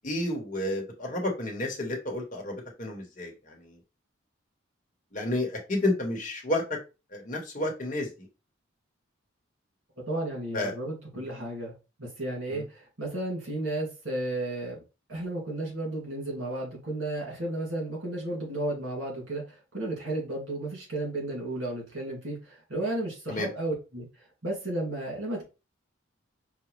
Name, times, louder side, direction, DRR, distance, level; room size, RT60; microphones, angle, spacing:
voice 1, 0.0-3.8 5.1-6.8 7.1-8.1 10.5-10.7 11.1-11.2 12.5-12.6 23.3-23.5, left 1 dB, 40° left, 1.0 m, -31 dB
voice 2, 10.1-11.7 12.0-14.8 15.1-24.1 24.4-25.4, right 1 dB, 70° right, 2.2 m, -33 dB
4.9 x 2.2 x 3.1 m
head